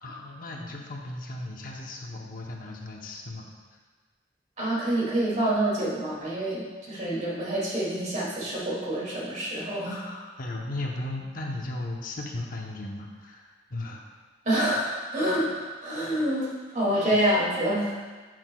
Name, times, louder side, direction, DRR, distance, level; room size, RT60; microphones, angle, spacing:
voice 1, 0.0-3.5 9.9-14.0 17.1-17.2, left 2 dB, 55° left, 0 dB, 0.8 m, -36 dB
voice 2, 4.6-10.0 14.4-18.0, right 1 dB, 45° right, -6 dB, 2.4 m, -27 dB
10.5 x 6.1 x 2.3 m, 1.4 s
head